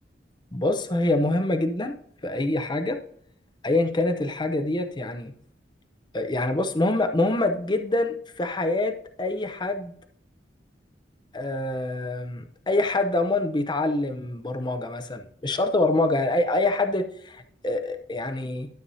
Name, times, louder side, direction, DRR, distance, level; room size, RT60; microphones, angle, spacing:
voice 1, 0.5-1.9 2.2-3.0 3.6-5.3 6.1-9.9 11.3-18.7, left 2 dB, 25° left, 6 dB, 0.7 m, -25 dB
12.5 x 7.0 x 2.7 m, 0.64 s
head